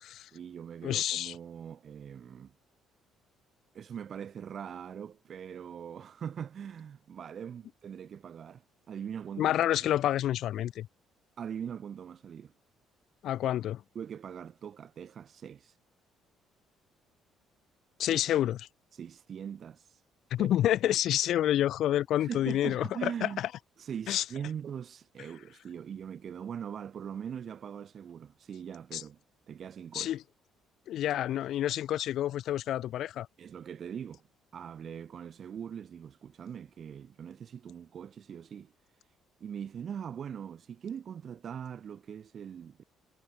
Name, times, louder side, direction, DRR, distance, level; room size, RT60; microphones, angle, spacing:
voice 1, 0.3-2.5 3.7-9.6 11.4-12.5 13.9-15.7 18.1-18.2 18.9-19.9 20.4-20.5 22.2-23.4 23.8-29.2 29.5-30.1 33.4-34.2 34.5-38.7 39.4-42.8, right 8 dB, 55° right, 4.0 m, -41 dB
voice 2, 0.8-1.3 9.4-10.9 13.2-13.8 18.0-18.7 20.3-23.5 24.1-24.2 28.9-29.0 29.9-30.2 30.9-33.3, left 12 dB, 70° left, 0.7 m, -28 dB
supercardioid pair, 65°, 0 cm